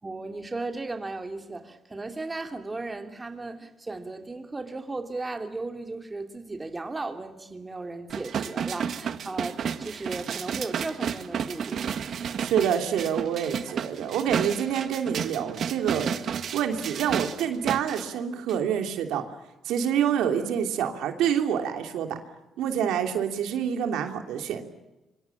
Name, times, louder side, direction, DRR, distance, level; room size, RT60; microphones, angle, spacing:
voice 1, 0.0-11.8, right 3 dB, 20° right, 2.8 m, -36 dB
sound 1, 8.1-18.0 18.5-18.6, right 7 dB, 60° right, 1.8 m, -32 dB
voice 2, 12.4-16.1 16.5-19.2 19.6-22.2 22.6-24.7, right 8 dB, 90° right, 3.1 m, -27 dB
26.0 x 25.0 x 7.2 m
cardioid pair, 90°, 0 cm